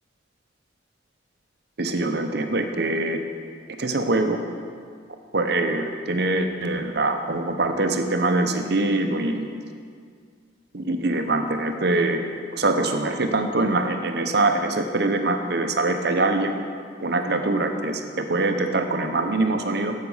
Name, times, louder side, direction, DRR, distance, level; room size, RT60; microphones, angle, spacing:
voice 1, 1.8-3.2 3.8-4.4 5.3-9.5 10.7-12.3 12.5-16.6 17.0-19.9, right 2 dB, 55° right, 6 dB, 0.7 m, -23 dB
10.5 x 7.4 x 5.5 m, 2.1 s
head